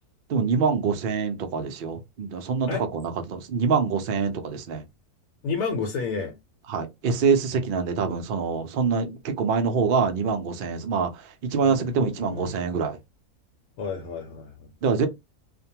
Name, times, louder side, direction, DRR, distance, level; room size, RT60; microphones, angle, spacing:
voice 1, 0.3-4.8 6.7-13.0 14.8-15.1, right 5 dB, 75° right, 0.5 m, -25 dB
voice 2, 5.4-6.3 11.6-12.5 13.8-14.7, left 5 dB, 75° left, 1.1 m, -31 dB
2.5 x 2.1 x 2.7 m
omnidirectional pair, 1.6 m